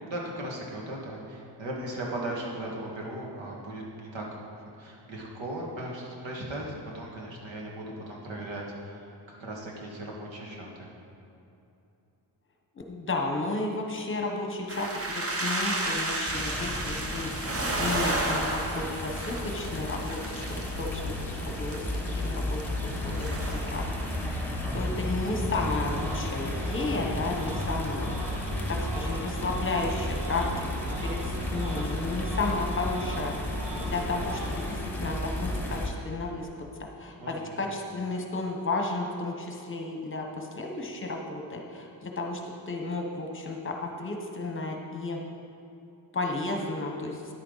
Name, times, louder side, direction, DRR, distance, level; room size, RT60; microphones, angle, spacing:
voice 1, 0.1-4.4 4.8-10.9 24.5-24.8 37.2-37.5, right 1 dB, 85° right, -2 dB, 2.0 m, -37 dB
voice 2, 12.8-17.3 17.8-20.4 20.7-24.5 24.7-28.1 28.7-30.7 31.0-33.3 33.7-36.5 37.0-42.4 42.7-45.2 46.1-47.2, left 2 dB, 30° left, 1 dB, 1.1 m, -33 dB
sound 1, 14.7-24.2, right 2 dB, 30° right, 1.0 m, -33 dB
sound 2, 16.3-35.9, left 1 dB, 5° left, 1.2 m, -33 dB
sound 3, 25.9-34.8, right 2 dB, 45° right, 1.1 m, -42 dB
10.5 x 8.7 x 4.0 m, 2.8 s
wide cardioid pair, 125°, 44 cm